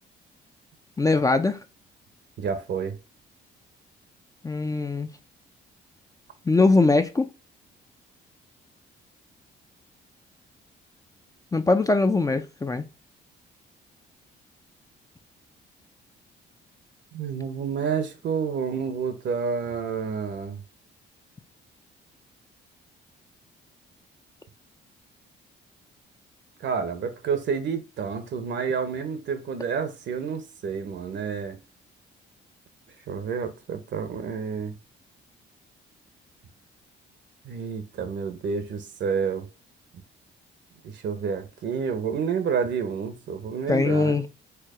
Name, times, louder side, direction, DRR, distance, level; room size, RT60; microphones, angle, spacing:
voice 1, 1.0-1.6 4.4-5.1 6.5-7.3 11.5-12.8 43.7-44.2, left 3 dB, 15° left, 0.4 m, -21 dB
voice 2, 2.4-3.0 17.1-20.6 26.6-31.6 33.1-34.7 37.4-39.5 40.8-44.2, right 6 dB, 65° right, 0.8 m, -29 dB
4.6 x 2.3 x 4.8 m
cardioid pair, 90°, 20 cm